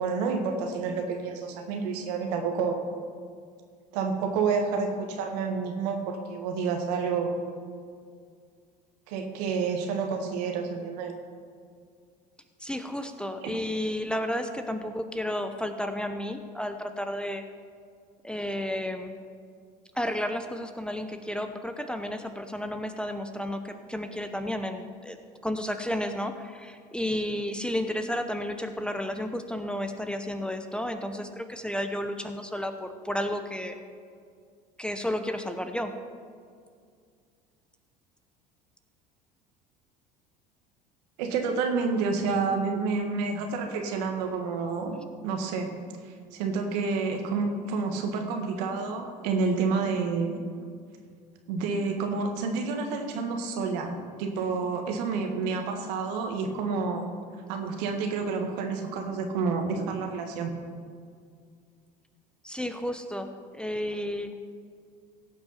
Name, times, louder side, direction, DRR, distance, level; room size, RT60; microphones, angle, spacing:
voice 1, 0.0-2.8 3.9-7.4 9.1-11.1 13.4-13.5 41.2-45.7 46.3-50.4 51.5-57.0 57.5-60.5, right 4 dB, 75° right, 4 dB, 1.6 m, -29 dB
voice 2, 12.6-17.4 18.2-19.1 19.9-25.2 25.4-33.8 34.8-36.0 62.4-64.3, left 1 dB, 5° left, 7 dB, 0.9 m, -32 dB
16.5 x 6.1 x 5.6 m, 2.2 s
hypercardioid pair, 75°, 21 cm